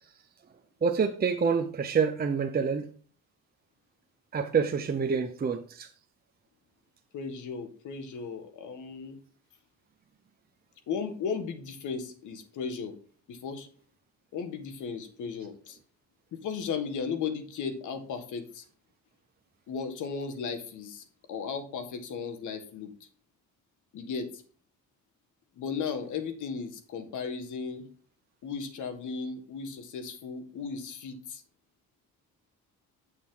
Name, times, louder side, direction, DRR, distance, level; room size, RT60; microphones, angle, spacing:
voice 1, 0.8-2.9 4.3-5.9, right 6 dB, 30° right, 0.7 m, -27 dB
voice 2, 7.1-9.2 10.9-12.9 13.3-13.7 14.3-15.8 16.3-18.6 19.7-23.1 23.9-24.4 25.6-27.8 28.4-31.4, left 5 dB, 75° left, 1.7 m, -36 dB
8.4 x 6.4 x 3.8 m
cardioid pair, 90°, 30 cm